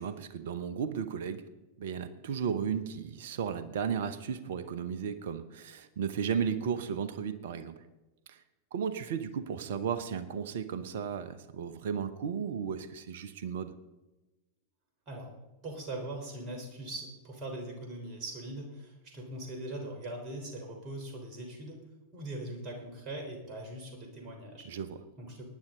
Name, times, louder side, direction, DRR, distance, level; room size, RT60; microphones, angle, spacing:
voice 1, 0.0-1.4 1.8-7.7 8.3-8.4 8.7-13.7 24.6-25.0, right 7 dB, 55° right, 12 dB, 1.0 m, -34 dB
voice 2, 15.6-21.8 22.1-24.7 25.2-25.6, right 1 dB, 35° right, 1 dB, 3.9 m, -41 dB
19.0 x 10.5 x 3.8 m, 1.1 s
figure-of-eight pair, 90°, 0 cm